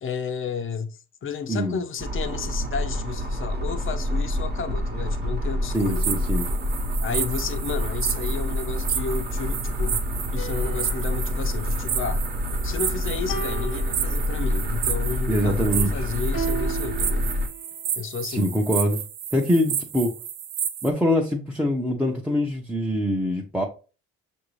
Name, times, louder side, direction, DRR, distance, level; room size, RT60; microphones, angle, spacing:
voice 1, 0.0-6.1 7.0-10.1 10.3-12.2 12.6-17.3 18.0-18.5, left 6 dB, 45° left, 0.6 m, -32 dB
sound 1, 2.0-17.5, equal, 35° right, 0.9 m, -27 dB
voice 2, 5.7-6.5 15.3-16.1 18.3-19.0 19.3-20.1 20.8-23.7, equal, 5° right, 0.6 m, -24 dB
sound 2, 5.8-20.9, right 9 dB, 80° right, 0.6 m, -32 dB
sound 3, 10.3-12.7 13.3-14.8 16.3-17.8, right 5 dB, 75° left, 1.1 m, -36 dB
5.8 x 2.6 x 3.1 m
cardioid pair, 90°, 30 cm